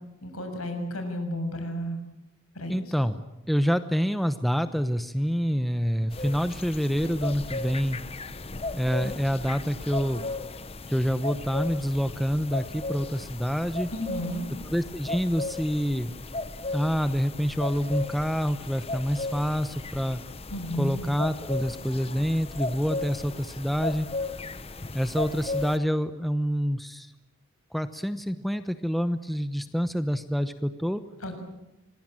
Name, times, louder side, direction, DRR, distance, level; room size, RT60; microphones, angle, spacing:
voice 1, 0.2-2.0 2.5-2.7 13.9-14.5 20.5-21.1 31.2-31.4, equal, 80° left, 6 dB, 6.8 m, -32 dB
voice 2, 2.7-8.0 8.7-10.3 10.9-13.9 14.7-16.1 16.7-20.2 20.8-24.1 24.9-27.1 27.7-31.0, equal, ahead, 10 dB, 0.8 m, -27 dB
sound 1, 6.1-25.8, left 3 dB, 25° left, 0.9 m, -36 dB
26.5 x 21.5 x 8.9 m, 0.92 s
head